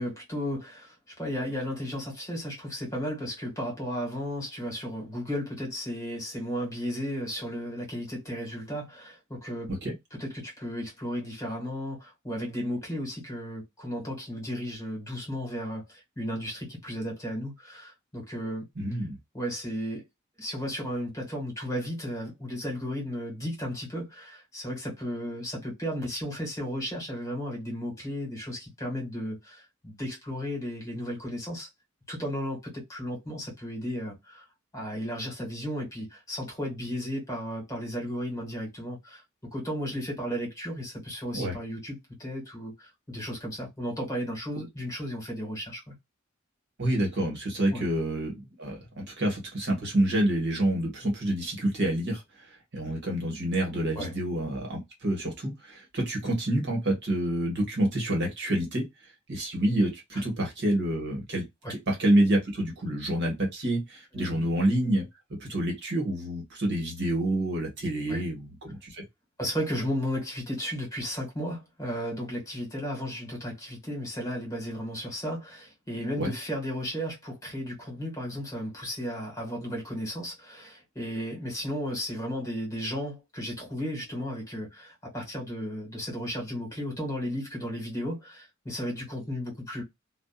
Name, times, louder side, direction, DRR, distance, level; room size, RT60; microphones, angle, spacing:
voice 1, 0.0-9.7 10.2-18.7 19.3-20.0 20.4-31.7 32.1-34.4 34.7-39.2 39.5-45.9 47.7-47.9 53.9-54.1 61.6-61.7 64.1-64.4 68.1-68.2 69.4-89.8, equal, 15° left, 1.5 m, -34 dB
voice 2, 18.7-19.2 41.3-41.5 46.8-58.8 59.3-61.4 61.7-65.0 65.4-69.0 76.2-76.3, right 1 dB, 55° right, 1.3 m, -28 dB
2.6 x 2.3 x 2.3 m
head